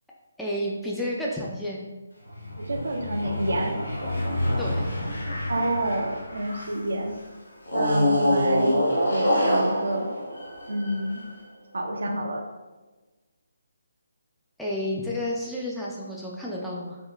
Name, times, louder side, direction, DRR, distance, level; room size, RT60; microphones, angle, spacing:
voice 1, 0.4-1.8 4.6-4.9 14.6-17.0, left 1 dB, ahead, -6 dB, 0.3 m, -31 dB
sound 1, 2.2-6.9 7.7-11.3, equal, 75° left, 0.7 m, -26 dB
voice 2, 2.6-3.8 5.5-7.2 7.7-8.8 9.1-10.1 10.7-11.2 11.7-12.5, right 1 dB, 65° right, 2 dB, 0.4 m, -28 dB
3.6 x 2.2 x 2.3 m, 1.2 s
figure-of-eight pair, 145°, 0 cm